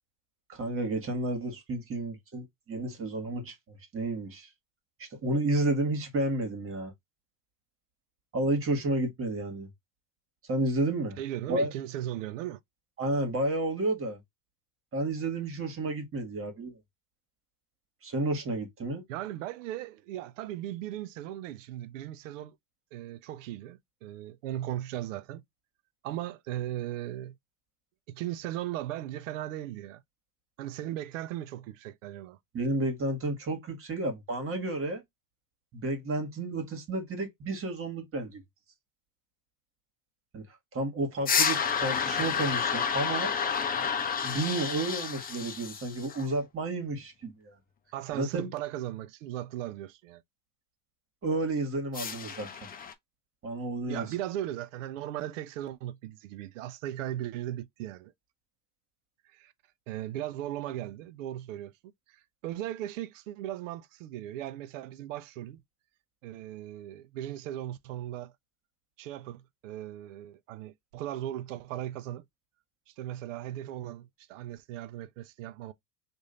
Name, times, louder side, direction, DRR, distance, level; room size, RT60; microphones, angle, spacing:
voice 1, 0.5-4.5 5.0-6.9 8.3-9.7 10.5-11.2 11.5-11.7 13.0-14.2 14.9-16.8 18.0-19.0 32.5-35.0 35.7-38.4 40.3-40.4 40.7-43.3 44.2-47.5 48.1-48.5 51.2-52.5 53.4-54.1, right 2 dB, 35° right, 1.7 m, -31 dB
voice 2, 11.2-12.6 19.1-22.5 22.9-25.4 26.0-27.4 28.1-30.0 30.6-32.4 47.9-50.2 53.9-58.1 59.3-59.5 59.9-61.7 62.1-65.6 66.2-68.3 69.0-72.2 72.9-75.7, right 13 dB, 85° right, 0.6 m, -37 dB
sound 1, 41.2-46.3 51.9-52.9, left 7 dB, 25° left, 0.6 m, -30 dB
3.1 x 2.6 x 3.8 m
supercardioid pair, 95°, 37 cm